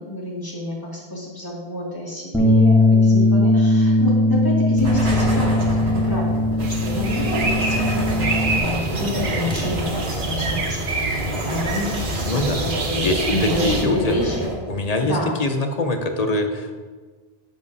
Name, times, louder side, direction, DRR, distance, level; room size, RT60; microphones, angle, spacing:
voice 1, 0.0-14.5 15.0-15.3, left 1 dB, 20° left, -5 dB, 2.2 m, -29 dB
Bass guitar, 2.3-8.6, left 2 dB, 5° left, 0.9 m, -18 dB
sound 1, 4.8-14.5, right 1 dB, 90° right, 1.9 m, -28 dB
sound 2, 6.6-13.8, right 3 dB, 55° right, 1.0 m, -28 dB
voice 2, 12.3-12.7 13.0-14.1 14.7-16.8, left 2 dB, 45° left, 5 dB, 0.7 m, -23 dB
10.0 x 7.5 x 2.7 m, 1.4 s
omnidirectional pair, 1.1 m